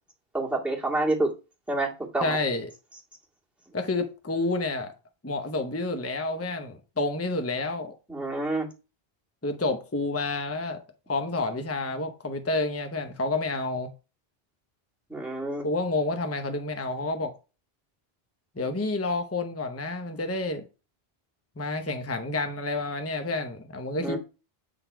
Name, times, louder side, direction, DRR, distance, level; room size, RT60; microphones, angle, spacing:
voice 1, 0.3-1.3 1.7-2.4 8.1-8.7 15.1-15.7 24.0-24.2, right 2 dB, ahead, 2.0 m, -28 dB
voice 2, 2.2-2.7 3.7-4.9 5.2-7.9 9.4-10.8 11.1-13.9 15.6-17.3 18.6-20.6 21.6-24.2, left 2 dB, 15° left, 0.8 m, -29 dB
8.4 x 4.1 x 4.5 m
omnidirectional pair, 1.0 m